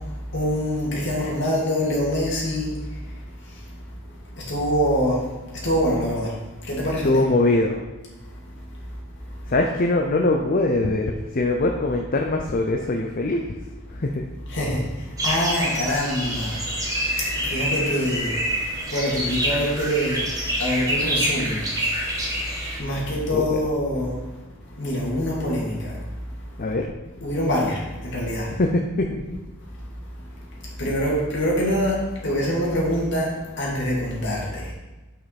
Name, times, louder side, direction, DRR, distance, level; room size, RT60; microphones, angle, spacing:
voice 1, 0.3-2.7 4.5-5.2 5.6-6.3 6.7-7.2 14.5-14.8 15.2-16.6 17.4-18.4 18.9-20.3 20.6-21.6 22.8-24.1 24.8-25.9 27.2-28.5 30.8-33.3 33.6-34.5, equal, 55° left, -4 dB, 2.6 m, -24 dB
voice 2, 7.0-7.8 9.5-13.5 13.9-14.2 23.3-23.6 26.6-26.9 28.6-29.4, left 2 dB, 40° left, 2 dB, 0.6 m, -22 dB
sound 1, 15.2-22.8, equal, 15° right, 1.3 m, -27 dB
9.1 x 5.6 x 4.2 m, 1.1 s
head